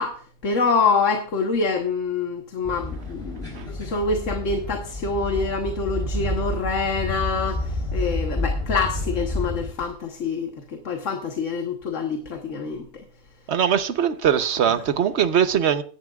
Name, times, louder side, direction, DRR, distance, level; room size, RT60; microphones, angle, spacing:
voice 1, 0.0-13.0, left 4 dB, 65° left, 1.6 m, -26 dB
sound 1, 2.6-9.7, left 1 dB, 25° left, 3.8 m, -29 dB
voice 2, 13.5-15.8, right 8 dB, 60° right, 1.1 m, -21 dB
16.5 x 11.0 x 2.4 m
omnidirectional pair, 1.4 m